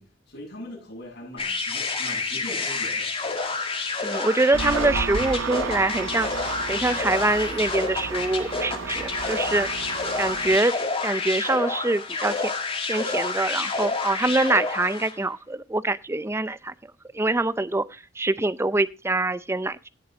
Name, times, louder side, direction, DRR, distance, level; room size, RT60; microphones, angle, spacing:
voice 1, 0.0-3.1, left 1 dB, 60° left, 7.5 m, -41 dB
sound 1, 1.4-15.2, left 4 dB, 30° left, 1.8 m, -29 dB
voice 2, 4.0-6.3 6.7-9.7 10.2-12.5 12.9-16.7 17.1-19.9, right 2 dB, 15° right, 0.5 m, -24 dB
Engine, 4.5-10.6, right 5 dB, 90° right, 0.6 m, -32 dB
17.0 x 6.8 x 3.8 m
head